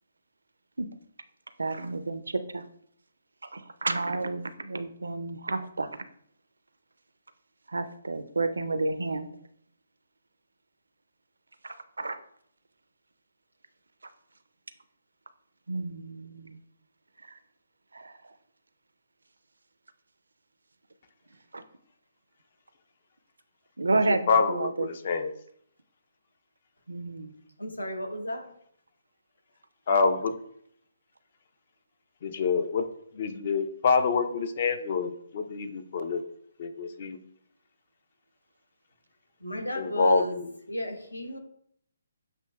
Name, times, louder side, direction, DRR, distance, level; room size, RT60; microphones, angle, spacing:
voice 1, 1.6-2.6 3.5-5.9 7.7-9.3 11.6-12.2 15.7-16.6 17.9-18.1 21.5-21.6 23.8-24.9 26.9-27.3, right 3 dB, 70° right, 11 dB, 0.4 m, -30 dB
voice 2, 24.1-25.3 29.9-30.3 32.2-32.8 33.1-36.2 36.6-37.2 39.8-40.5, left 4 dB, 40° left, 7 dB, 0.5 m, -26 dB
voice 3, 27.6-28.5 39.4-40.4 40.7-41.4, equal, 80° left, 5 dB, 0.8 m, -34 dB
7.5 x 2.7 x 2.2 m, 0.67 s
figure-of-eight pair, 135°, 0 cm